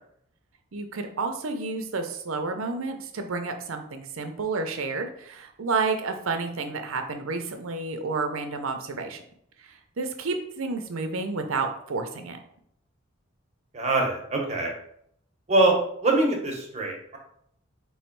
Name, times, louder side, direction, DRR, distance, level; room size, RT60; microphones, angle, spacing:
voice 1, 0.7-9.2 9.6-12.4, right 4 dB, 75° right, 6 dB, 0.6 m, -30 dB
voice 2, 13.7-14.7 15.5-15.8 16.0-17.2, right 2 dB, 35° right, 0 dB, 1.0 m, -23 dB
3.5 x 3.1 x 4.6 m, 0.70 s
head